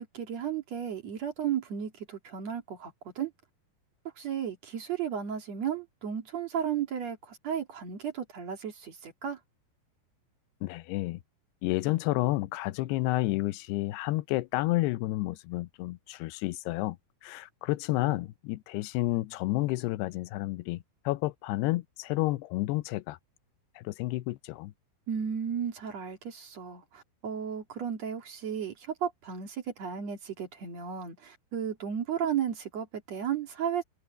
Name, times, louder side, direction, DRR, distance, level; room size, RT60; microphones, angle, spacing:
voice 1, 0.0-3.3 4.2-9.4 25.1-33.8, right 8 dB, 50° right, 2.9 m, -34 dB
voice 2, 10.6-11.2 11.6-17.0 17.2-23.2 23.8-24.7, left 18 dB, 90° left, 2.8 m, -30 dB
omnidirectional pair, 4.6 m